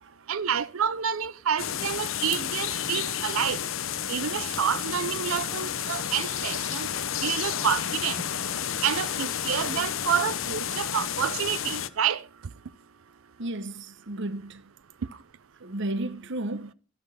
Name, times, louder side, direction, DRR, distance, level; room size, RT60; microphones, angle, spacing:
voice 1, 0.3-3.6 4.1-6.9 7.2-8.2 8.8-12.3, right 8 dB, 85° right, 0.6 m, -28 dB
sound 1, 1.6-11.9, left 9 dB, 75° left, 0.9 m, -31 dB
voice 2, 13.4-14.7 15.6-16.7, right 1 dB, 60° right, 1.0 m, -33 dB
13.5 x 11.0 x 5.5 m
head